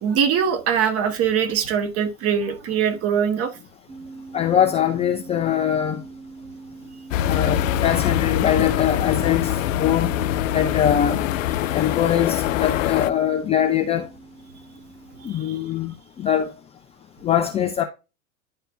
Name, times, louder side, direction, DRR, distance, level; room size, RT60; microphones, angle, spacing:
voice 1, 0.0-3.5 15.3-15.6, right 7 dB, 35° right, 1.5 m, -22 dB
sound 1, 3.9-15.4, right 3 dB, 80° right, 1.9 m, -43 dB
voice 2, 4.3-6.0 7.3-10.2 10.5-11.2 11.7-14.1 15.2-16.5 17.2-17.8, left 9 dB, 15° left, 0.4 m, -22 dB
sound 2, 7.1-13.1, left 12 dB, 65° left, 0.6 m, -23 dB
10.5 x 4.3 x 2.7 m
figure-of-eight pair, 95°, 43 cm